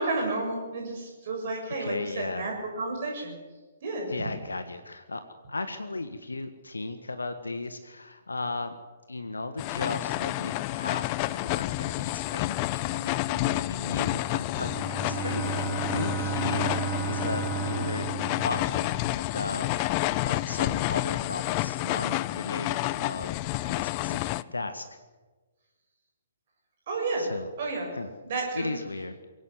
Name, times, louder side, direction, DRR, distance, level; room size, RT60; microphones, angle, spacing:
voice 1, 0.0-3.4 3.8-4.1 26.9-27.3 27.6-27.9 28.2-28.7, right 3 dB, 45° right, 1 dB, 7.1 m, -31 dB
voice 2, 1.8-2.5 4.1-8.8 9.1-14.7 15.1-18.1 18.4-24.8 27.2-27.5 27.9-28.1 28.5-29.2, left 2 dB, 75° left, 9 dB, 1.6 m, -36 dB
sound 1, 9.6-24.4, left 18 dB, 30° left, 0.6 m, -30 dB
Bowed string instrument, 14.4-19.2, right 7 dB, ahead, 5.4 m, -33 dB
22.5 x 17.5 x 8.1 m, 1.3 s
figure-of-eight pair, 125°, 0 cm